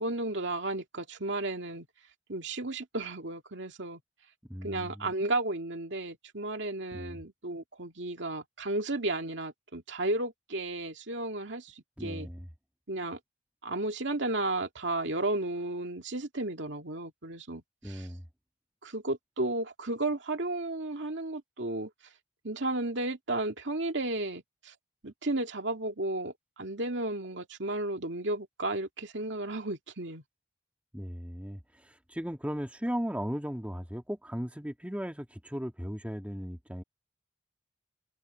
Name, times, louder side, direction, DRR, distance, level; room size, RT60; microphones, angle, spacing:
voice 1, 0.0-1.9 2.3-4.0 4.6-12.3 12.9-13.2 13.6-18.1 18.8-21.9 22.4-24.7 25.0-30.2, right 2 dB, 70° right, 2.3 m, -33 dB
voice 2, 4.5-5.1 6.9-7.2 12.0-12.5 17.8-18.2 30.9-36.8, equal, 5° right, 1.8 m, -37 dB
head